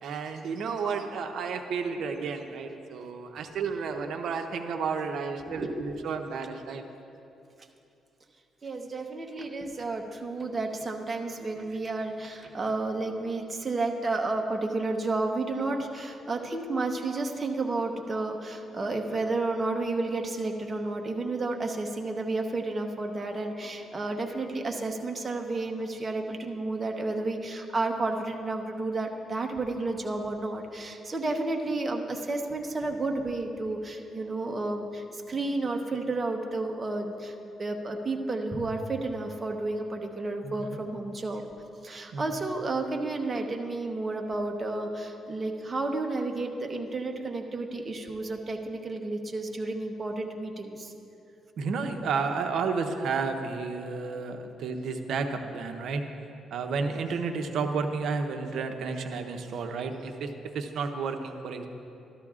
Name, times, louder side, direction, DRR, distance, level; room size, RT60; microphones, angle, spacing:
voice 1, 0.0-6.8 40.4-40.8 42.1-42.2 51.6-56.0 56.5-61.7, right 5 dB, 70° right, 5 dB, 0.7 m, -32 dB
voice 2, 5.6-5.9 8.6-41.4 41.8-50.9, right 2 dB, 30° right, 3 dB, 0.9 m, -31 dB
13.0 x 12.5 x 2.4 m, 2.7 s
cardioid pair, 90°, 0 cm